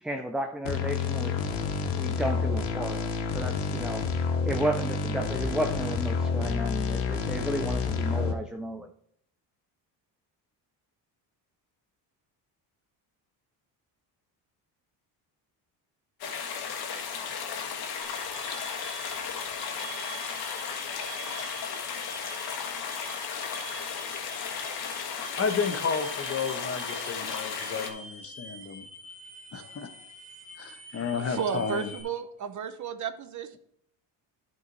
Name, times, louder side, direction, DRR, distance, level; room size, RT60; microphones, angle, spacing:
voice 1, 0.0-1.4 2.0-4.1 4.5-8.9, right 1 dB, ahead, 5 dB, 0.4 m, -33 dB
sound 1, 0.6-8.3, left 5 dB, 80° left, 1.5 m, -29 dB
sound 2, 16.2-27.9, left 6 dB, 60° left, 1.4 m, -35 dB
sound 3, 18.0-32.0, right 3 dB, 90° right, 2.3 m, -46 dB
voice 2, 25.4-28.8 29.5-30.1 30.6-31.9, left 5 dB, 35° left, 8 dB, 1.1 m, -32 dB
voice 3, 31.2-33.6, right 6 dB, 45° right, 11 dB, 0.8 m, -33 dB
10.5 x 4.8 x 4.1 m, 0.67 s
cardioid pair, 110°, 42 cm